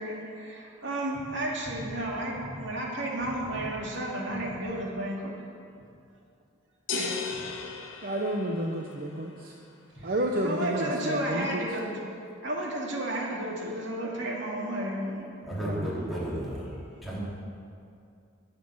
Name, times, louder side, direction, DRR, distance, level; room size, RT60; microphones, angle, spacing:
voice 1, 0.0-5.3 6.9-7.3 10.0-10.1 10.4-15.3, right 1 dB, 65° right, -2 dB, 2.7 m, -33 dB
sound 1, 6.9-8.9, left 4 dB, 65° left, 2.0 m, -35 dB
voice 2, 8.0-9.5 10.0-11.7 15.6-15.9, right 1 dB, 45° right, 0 dB, 1.0 m, -30 dB
voice 3, 15.4-16.8 17.0-17.2, right 1 dB, ahead, -8 dB, 3.9 m, -33 dB
22.5 x 8.0 x 6.5 m, 2.4 s
head